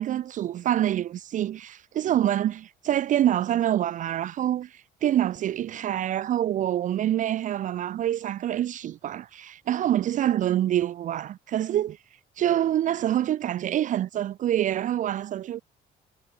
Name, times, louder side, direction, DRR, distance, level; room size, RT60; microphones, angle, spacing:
voice 1, 0.0-12.0 12.4-15.6, right 11 dB, 50° right, 0.5 m, -26 dB
cardioid pair, 110°, 17 cm